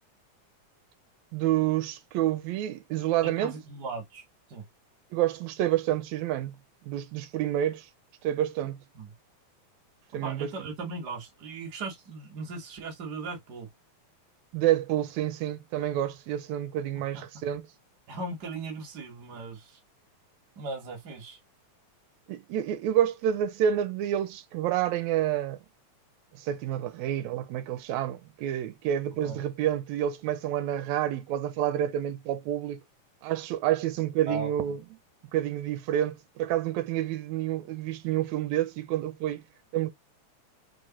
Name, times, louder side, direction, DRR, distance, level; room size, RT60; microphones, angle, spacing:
voice 1, 1.3-3.5 5.1-6.6 6.8-7.9 8.2-8.8 10.1-10.5 14.5-17.7 22.3-25.6 26.4-32.8 33.2-34.8 35.3-39.4 39.7-39.9, right 11 dB, 80° right, 2.0 m, -28 dB
voice 2, 3.2-4.2 4.5-4.6 8.9-9.1 10.2-13.7 16.9-17.2 18.1-19.8 20.6-21.4 29.2-29.4 34.3-34.5, right 3 dB, 45° right, 1.4 m, -38 dB
4.7 x 2.9 x 2.8 m
omnidirectional pair, 3.3 m